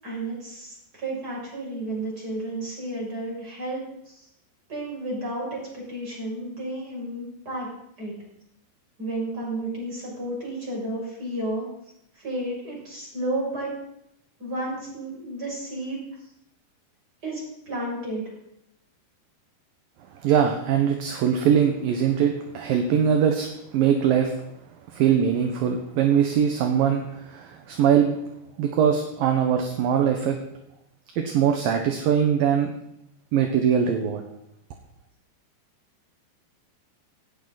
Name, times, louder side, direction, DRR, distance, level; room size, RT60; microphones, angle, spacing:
voice 1, 0.0-4.2 4.7-7.7 8.0-8.1 9.0-11.7 12.2-13.7 14.4-16.0 17.2-18.2, right 1 dB, 20° right, -3 dB, 7.3 m, -32 dB
voice 2, 20.1-24.4 24.9-28.2 28.6-30.4 31.2-32.7 33.3-34.2, right 8 dB, 65° right, 4 dB, 2.6 m, -22 dB
18.5 x 17.0 x 4.2 m, 0.79 s
omnidirectional pair, 5.2 m